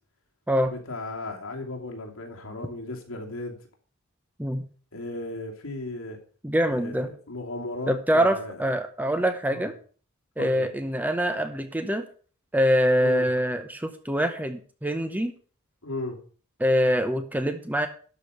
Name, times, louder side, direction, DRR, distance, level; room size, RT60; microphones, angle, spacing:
voice 1, 0.7-3.6 4.9-6.2 6.7-8.7 9.5-9.7 10.4-10.7 13.0-13.3 15.8-16.2, left 2 dB, 65° left, 1 dB, 2.7 m, -36 dB
voice 2, 6.4-7.1 7.9-9.7 10.4-12.0 12.5-15.3 16.6-17.9, equal, 10° right, 8 dB, 0.8 m, -24 dB
12.0 x 5.1 x 6.7 m, 0.41 s
head